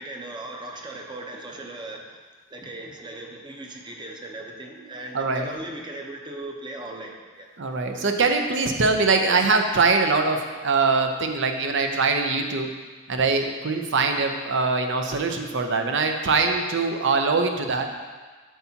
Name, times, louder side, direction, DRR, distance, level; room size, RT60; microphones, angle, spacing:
voice 1, 0.0-2.2 2.5-7.5 8.0-8.1, right 2 dB, 20° right, 1 dB, 0.8 m, -38 dB
voice 2, 5.1-5.5 7.6-12.7 13.1-17.9, right 4 dB, 65° right, 4 dB, 0.7 m, -23 dB
8.2 x 7.0 x 2.9 m, 1.4 s
head